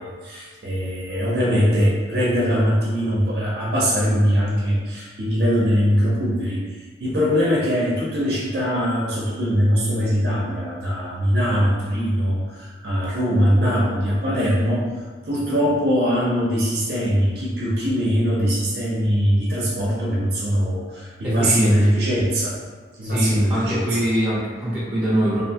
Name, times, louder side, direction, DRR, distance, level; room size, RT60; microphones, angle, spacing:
voice 1, 0.0-6.6 7.0-22.6 23.0-23.9, equal, 60° right, -5 dB, 0.5 m, -21 dB
voice 2, 21.2-21.8 23.0-25.4, equal, 5° right, -9 dB, 0.7 m, -23 dB
2.5 x 2.2 x 2.7 m, 1.4 s
head